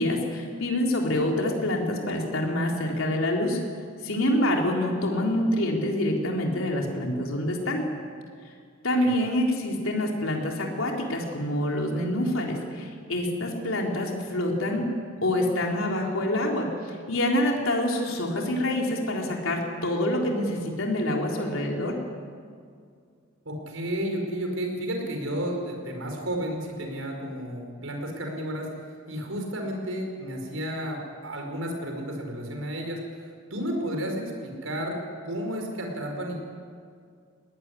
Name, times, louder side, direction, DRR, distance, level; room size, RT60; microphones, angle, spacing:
voice 1, 0.0-3.6 4.0-7.8 8.8-14.9 15.2-21.9, left 1 dB, 85° left, 0 dB, 3.8 m, -26 dB
voice 2, 23.4-28.7 29.1-36.3, equal, 85° right, 2 dB, 5.3 m, -32 dB
21.0 x 19.0 x 9.9 m, 2.2 s
head